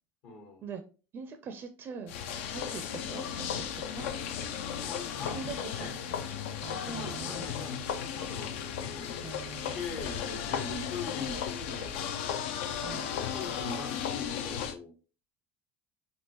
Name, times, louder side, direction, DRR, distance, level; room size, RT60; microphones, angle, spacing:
voice 1, 0.2-0.6 2.6-2.8 4.8-5.9 6.7-12.2 12.9-14.9, left 3 dB, 70° left, 2 dB, 1.0 m, -42 dB
voice 2, 1.1-2.1 2.5-4.1 5.3-5.7 6.6-7.5 9.2-10.0 12.8-13.1, right 6 dB, 40° right, 7 dB, 0.4 m, -43 dB
sound 1, 2.1-14.7, left 8 dB, 85° left, 0.4 m, -35 dB
3.6 x 2.3 x 2.8 m, 0.35 s
supercardioid pair, 100°, 6 cm